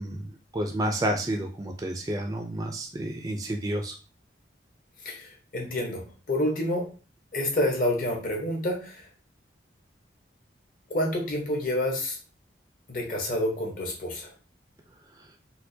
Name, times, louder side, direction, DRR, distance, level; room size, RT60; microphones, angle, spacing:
voice 1, 0.0-3.9, right 1 dB, 20° right, 3 dB, 0.3 m, -30 dB
voice 2, 5.0-6.0 6.3-6.9 7.3-9.0 10.9-12.2 12.9-14.3, left 1 dB, 50° left, 0 dB, 1.0 m, -28 dB
4.3 x 2.2 x 2.7 m, 0.35 s
head